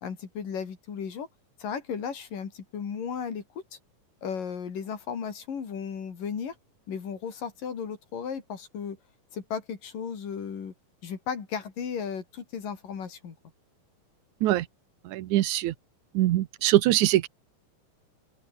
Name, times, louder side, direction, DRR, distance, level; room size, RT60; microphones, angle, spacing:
voice 1, 0.0-1.3 1.6-3.4 3.7-3.8 4.2-6.6 6.9-9.0 9.3-10.7 11.0-13.4, left 7 dB, 75° left, 5.0 m, -35 dB
voice 2, 15.1-15.7 16.1-17.3, right 15 dB, 70° right, 2.1 m, -23 dB
omnidirectional pair, 3.9 m